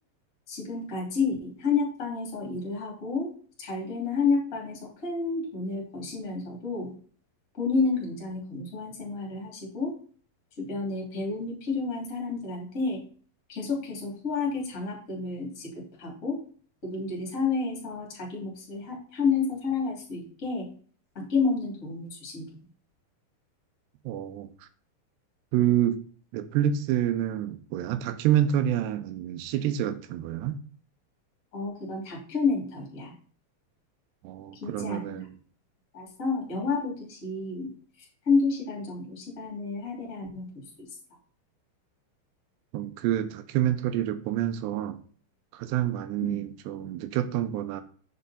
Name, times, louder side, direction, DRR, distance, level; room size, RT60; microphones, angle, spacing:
voice 1, 0.5-3.3 3.6-6.9 7.6-9.9 10.6-13.0 13.5-15.7 16.0-16.4 16.8-20.7 21.1-22.5 31.5-33.1 34.6-35.1 35.9-40.4 46.2-46.4, left 4 dB, 20° left, 2.6 m, -30 dB
voice 2, 24.1-24.5 25.5-26.0 26.3-30.6 34.2-35.3 42.7-45.0 45.5-47.8, right 11 dB, 80° right, 2.8 m, -27 dB
8.3 x 6.4 x 4.2 m
omnidirectional pair, 5.1 m